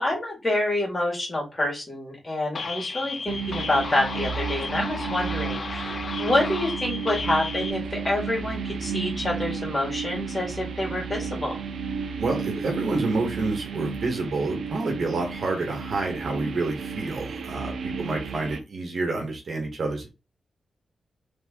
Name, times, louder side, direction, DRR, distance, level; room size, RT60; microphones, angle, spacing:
voice 1, 0.0-11.6 17.9-18.2, left 1 dB, 30° left, -2 dB, 2.2 m, -27 dB
sound 1, 2.5-7.7, left 4 dB, 55° left, 0.5 m, -34 dB
sound 2, 3.3-18.6, right 6 dB, 85° right, 0.6 m, -33 dB
voice 2, 12.2-20.1, right 3 dB, 60° right, 2 dB, 1.5 m, -28 dB
3.6 x 3.3 x 3.7 m, 0.27 s
cardioid pair, 90°, 0 cm